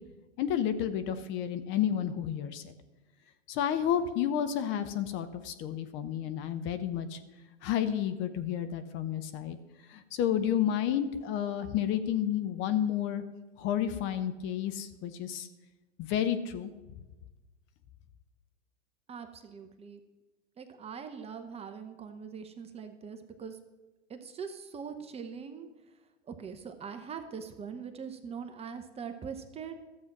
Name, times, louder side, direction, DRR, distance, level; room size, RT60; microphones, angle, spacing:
voice 1, 0.4-2.7 3.5-7.2 7.6-9.6 9.9-13.2 13.6-15.5 16.0-16.7, left 9 dB, 30° left, 10 dB, 0.8 m, -31 dB
voice 2, 19.1-20.0 20.6-23.6 24.1-25.7 26.3-29.7, right 6 dB, 15° right, 7 dB, 0.7 m, -42 dB
13.0 x 7.5 x 5.9 m, 1.2 s
hypercardioid pair, 115°, 37 cm